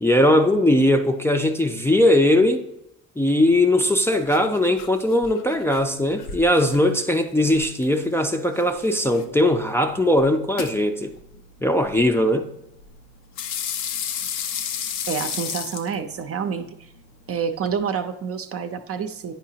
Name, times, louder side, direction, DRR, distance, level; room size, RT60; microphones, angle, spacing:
voice 1, 0.0-2.7 3.2-11.1 11.6-12.5, left 1 dB, 10° left, 0.5 m, -19 dB
sound 1, 3.5-17.8, left 8 dB, 85° left, 0.6 m, -35 dB
voice 2, 15.1-16.7 17.3-19.3, right 6 dB, 45° right, 0.7 m, -28 dB
9.1 x 4.8 x 2.8 m
supercardioid pair, 70°, 31 cm